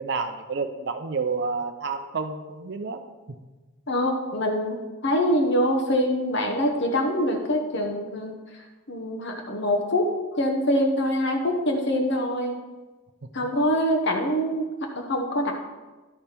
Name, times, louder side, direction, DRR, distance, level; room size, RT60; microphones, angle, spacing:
voice 1, 0.0-3.0, right 4 dB, 50° right, 7 dB, 0.5 m, -29 dB
voice 2, 3.9-12.6 13.3-15.5, equal, 50° left, 2 dB, 0.9 m, -25 dB
11.0 x 5.4 x 4.4 m, 1.2 s
head